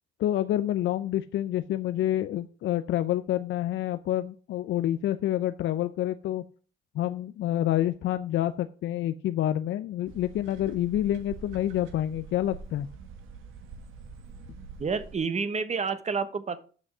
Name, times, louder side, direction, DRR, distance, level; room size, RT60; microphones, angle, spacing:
voice 1, 0.2-6.4 6.9-12.9, left 12 dB, 75° left, 10 dB, 0.6 m, -28 dB
sound 1, 10.1-15.2, right 5 dB, 90° right, 1.4 m, -45 dB
voice 2, 14.8-16.6, right 5 dB, 35° right, 12 dB, 1.1 m, -29 dB
7.9 x 6.2 x 6.1 m, 0.39 s
cardioid pair, 90°, 20 cm